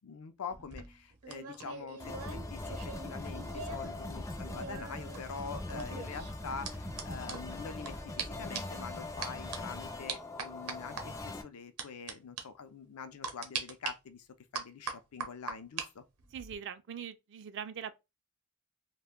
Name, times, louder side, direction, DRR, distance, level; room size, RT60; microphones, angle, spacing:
voice 1, 0.0-14.3 14.5-16.0, left 5 dB, 80° left, 0.5 m, -45 dB
sound 1, 0.5-3.9 4.2-7.9 8.2-8.3 8.5-8.8 9.2-9.6 10.1-11.0 11.8-12.1 12.4-12.5 13.2-13.9 14.5-15.9 16.2-16.6, right 6 dB, 90° right, 0.7 m, -41 dB
sound 2, 2.0-11.4, left 2 dB, 15° left, 0.4 m, -41 dB
voice 2, 16.3-17.9, right 8 dB, 55° right, 0.4 m, -42 dB
2.5 x 2.2 x 3.5 m
head